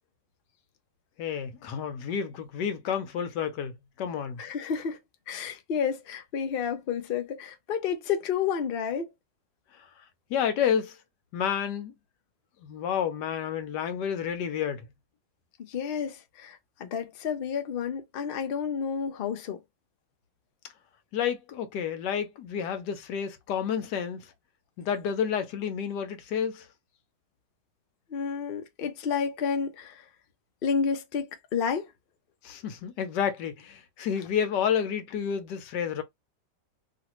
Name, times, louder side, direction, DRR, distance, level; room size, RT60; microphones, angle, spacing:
voice 1, 1.2-3.7 4.0-4.4 10.3-11.0 11.3-11.9 12.6-14.8 21.1-24.3 24.8-26.7 32.4-36.0, left 8 dB, 85° left, 1.4 m, -30 dB
voice 2, 4.4-5.0 5.3-9.1 15.6-19.6 28.1-30.1 30.6-31.9, left 6 dB, 60° left, 0.6 m, -30 dB
3.1 x 2.5 x 3.0 m
omnidirectional pair, 1.8 m